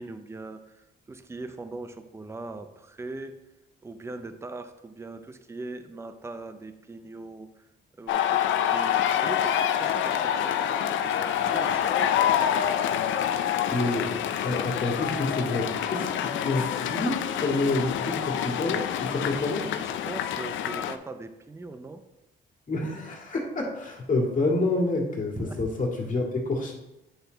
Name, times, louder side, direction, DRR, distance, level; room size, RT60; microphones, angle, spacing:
voice 1, 0.0-3.4 3.8-7.7 8.0-12.3 19.7-22.0 25.3-25.7, right 2 dB, 15° right, 9 dB, 0.6 m, -40 dB
sound 1, 8.1-21.0, left 9 dB, 75° left, 0.5 m, -27 dB
voice 2, 13.7-14.1 14.4-19.7 22.7-26.7, left 2 dB, 40° left, -1 dB, 2.0 m, -28 dB
9.0 x 4.4 x 3.9 m, 0.93 s
cardioid pair, 90°, 20 cm